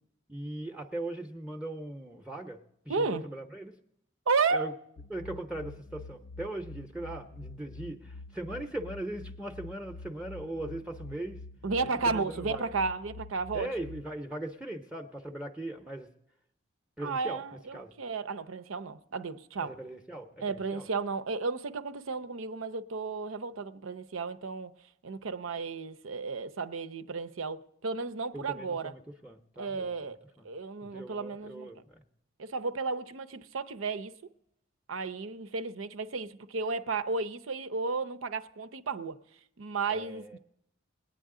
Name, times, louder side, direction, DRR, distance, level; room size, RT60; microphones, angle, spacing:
voice 1, 0.3-3.7 4.5-4.7 5.1-11.4 12.0-12.7 13.5-16.1 17.0-17.4 17.7-17.9 19.6-20.9 28.3-30.5 30.8-32.0 39.9-40.4, right 1 dB, 5° right, 0.6 m, -40 dB
voice 2, 2.9-3.2 4.3-4.7 11.6-13.7 17.0-19.7 20.4-24.7 25.0-28.9 29.6-30.2 30.4-31.7 32.4-34.1 34.9-39.2 39.6-40.4, right 4 dB, 80° right, 0.7 m, -33 dB
sound 1, 5.0-14.0, left 3 dB, 85° left, 0.4 m, -47 dB
21.0 x 9.1 x 3.7 m
head